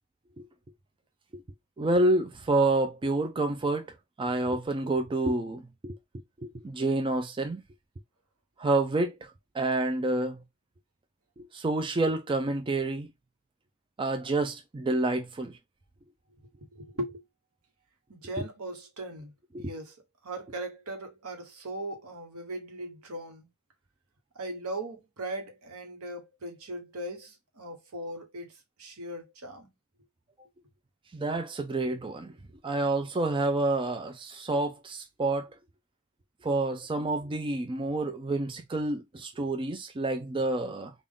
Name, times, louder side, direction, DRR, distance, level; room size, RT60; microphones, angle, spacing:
voice 1, 1.8-3.9 4.2-6.0 6.4-7.6 8.6-9.3 9.5-10.4 11.4-13.1 14.0-15.6 18.4-18.5 19.5-19.7 31.1-32.3 32.6-35.5 36.4-40.9, right 2 dB, 25° right, 0.4 m, -28 dB
voice 2, 16.7-17.2 18.1-19.9 20.2-23.5 24.3-28.5 28.8-29.7, right 1 dB, 75° right, 1.2 m, -39 dB
3.7 x 2.4 x 3.6 m
head